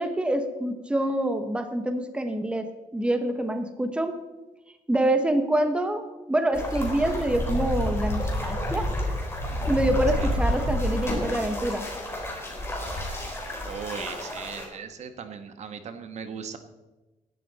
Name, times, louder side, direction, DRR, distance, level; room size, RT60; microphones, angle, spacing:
voice 1, 0.0-4.2 4.9-8.9 9.7-11.9, right 1 dB, 10° right, 7 dB, 1.1 m, -26 dB
sound 1, 6.5-14.7, equal, 20° left, 3.8 m, -29 dB
voice 2, 13.6-16.6, right 6 dB, 60° right, 8 dB, 1.4 m, -38 dB
16.5 x 12.0 x 4.2 m, 1.1 s
cardioid pair, 130°, 13 cm